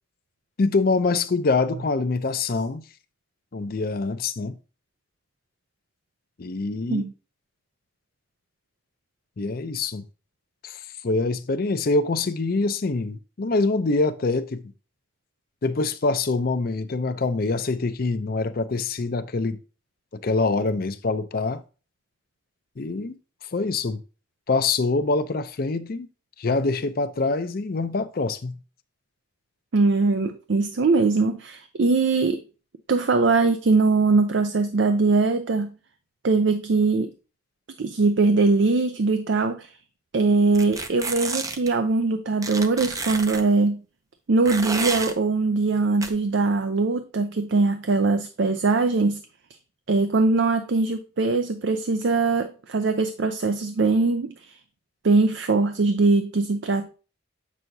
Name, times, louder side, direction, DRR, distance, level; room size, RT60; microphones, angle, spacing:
voice 1, 0.6-2.9 3.5-4.6 6.4-7.1 9.4-10.0 10.6-14.7 15.6-19.6 20.1-21.6 22.8-24.0 24.5-26.1 26.4-28.6, left 3 dB, 50° left, 0.5 m, -25 dB
voice 2, 29.7-32.4 32.9-35.7 36.2-37.1 37.8-39.7 40.1-43.8 44.3-49.2 49.9-54.5 55.0-56.9, right 3 dB, 65° right, 0.5 m, -21 dB
sound 1, 40.5-41.7 42.4-43.4 44.5-45.1 46.0-46.1, right 3 dB, 15° right, 0.5 m, -30 dB
7.8 x 6.1 x 2.7 m
head